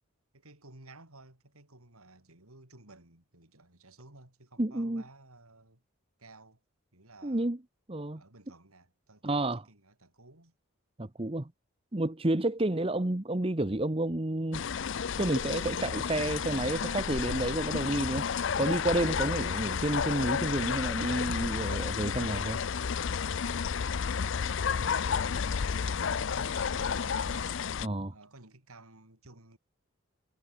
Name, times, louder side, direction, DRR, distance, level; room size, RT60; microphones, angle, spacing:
voice 1, 0.3-5.8 6.2-6.6 6.9-7.5 8.1-10.5 12.7-12.9 24.0-27.6 28.1-29.6, right 2 dB, 90° right, 5.1 m, -55 dB
voice 2, 4.6-5.0 7.2-7.6 7.9-8.2 9.2-9.6 11.0-11.5 11.9-14.7 15.2-18.3 18.6-22.6 27.8-28.1, right 1 dB, 25° right, 1.0 m, -30 dB
sound 1, 14.5-27.9, left 6 dB, 60° left, 0.5 m, -31 dB
head